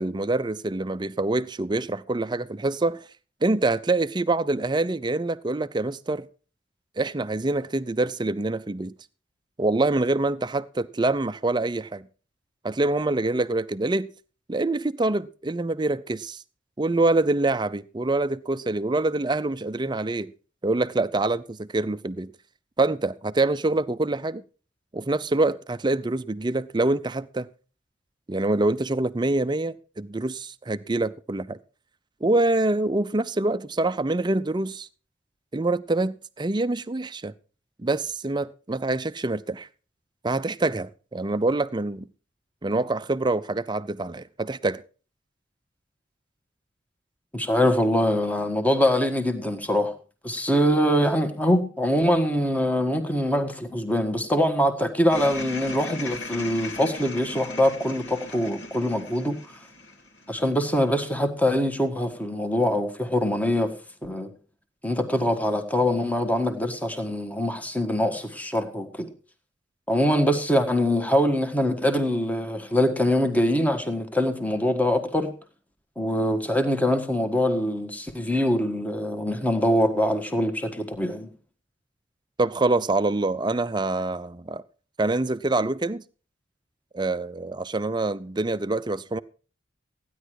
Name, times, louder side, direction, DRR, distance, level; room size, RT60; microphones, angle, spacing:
voice 1, 0.0-3.0 3.4-6.3 7.0-8.9 9.6-12.1 12.6-14.1 14.5-16.4 16.8-20.3 20.6-22.3 22.8-24.4 24.9-27.5 28.3-31.6 32.2-34.9 35.5-37.3 37.8-39.7 40.2-42.1 42.6-44.8 82.4-84.6 85.0-86.0 86.9-89.2, right 2 dB, 25° right, 0.5 m, -25 dB
voice 2, 47.3-49.9 50.2-59.4 60.3-63.7 64.0-64.3 64.8-69.1 69.9-75.3 76.0-81.3, equal, 10° left, 1.5 m, -23 dB
sound 1, 55.1-60.5, left 2 dB, 65° left, 2.3 m, -38 dB
15.0 x 10.0 x 4.7 m
head